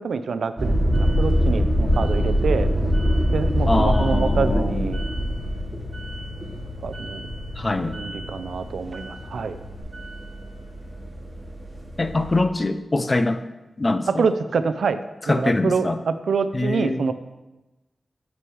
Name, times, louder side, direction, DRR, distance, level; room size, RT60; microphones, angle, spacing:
voice 1, 0.0-2.7 3.3-5.0 6.8-7.2 7.9-9.6 14.2-15.0 15.3-17.1, right 5 dB, 80° right, 11 dB, 0.4 m, -26 dB
sound 1, 0.6-12.4, equal, 20° right, 1.0 m, -24 dB
Bass guitar, 3.6-9.8, left 3 dB, 50° left, 1.2 m, -35 dB
voice 2, 3.7-4.9 7.6-8.0 12.0-13.4 13.8-14.3 15.3-16.0 16.5-17.1, left 2 dB, 25° left, 9 dB, 0.4 m, -23 dB
6.3 x 6.1 x 4.7 m, 1.0 s
wide cardioid pair, 170°, 0 cm